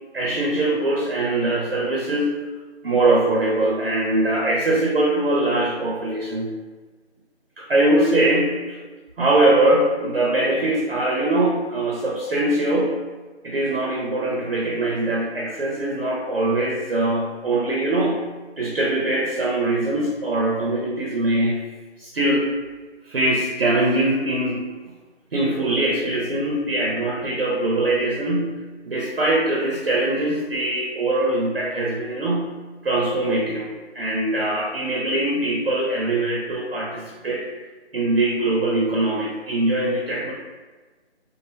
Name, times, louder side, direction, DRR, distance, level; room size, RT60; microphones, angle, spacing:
voice 1, 0.1-2.4 2.8-6.5 7.6-8.8 9.2-13.0 13.4-18.2 18.6-21.6 22.0-22.5 23.0-24.7 25.3-28.6 28.8-32.5 32.8-37.4 37.9-40.3, right 1 dB, 55° right, -3 dB, 0.6 m, -22 dB
3.1 x 2.6 x 2.6 m, 1.3 s
figure-of-eight pair, 170°, 34 cm